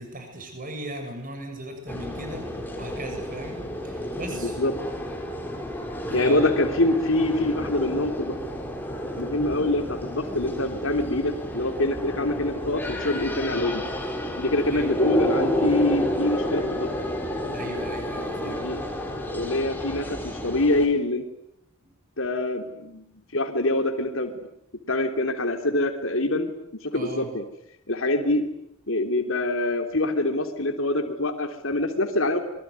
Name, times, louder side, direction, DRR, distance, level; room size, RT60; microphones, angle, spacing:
voice 1, 0.0-4.6 6.1-6.5 14.7-14.9 17.5-18.7 21.8-21.9 26.9-27.3, right 1 dB, 40° right, 5 dB, 7.1 m, -38 dB
sound 1, 1.9-20.9, equal, 10° left, 4.4 m, -30 dB
voice 2, 4.3-4.7 6.1-8.4 9.2-13.8 14.4-16.9 18.4-18.8 19.3-21.3 22.2-23.1 23.3-24.5 24.9-26.5 26.8-27.4 27.9-28.4 28.9-32.4, left 2 dB, 60° left, 5 dB, 3.3 m, -25 dB
26.0 x 23.5 x 9.6 m, 0.78 s
head